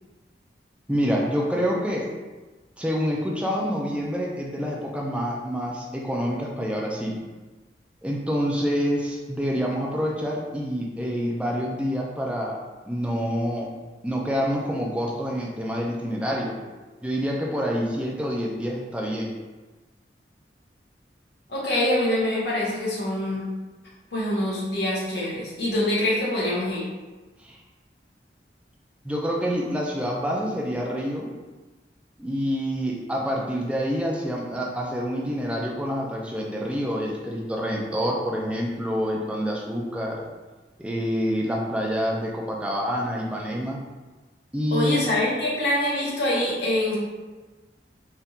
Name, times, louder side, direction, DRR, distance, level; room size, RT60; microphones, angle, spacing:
voice 1, 0.9-2.1 2.8-7.2 8.0-12.6 12.8-13.7 14.0-16.5 17.0-19.3 27.4-27.6 29.0-31.3 32.2-40.3 40.8-43.8 44.5-45.0, equal, 5° right, -2 dB, 0.4 m, -27 dB
voice 2, 21.5-23.4 24.1-26.8 44.7-47.0, left 1 dB, 70° left, -6 dB, 1.1 m, -25 dB
3.5 x 2.8 x 2.3 m, 1.3 s
head